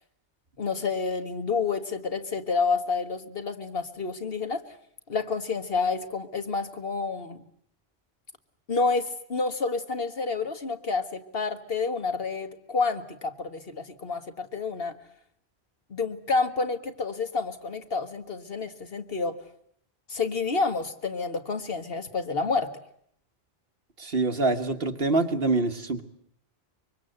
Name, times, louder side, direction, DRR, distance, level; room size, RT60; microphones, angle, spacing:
voice 1, 0.6-4.6 5.1-7.4 8.7-14.9 15.9-19.4 20.1-22.7, left 4 dB, 65° left, 8 dB, 1.8 m, -29 dB
voice 2, 24.0-26.0, right 3 dB, 65° right, 6 dB, 1.8 m, -25 dB
25.0 x 23.0 x 8.0 m, 0.68 s
omnidirectional pair, 1.1 m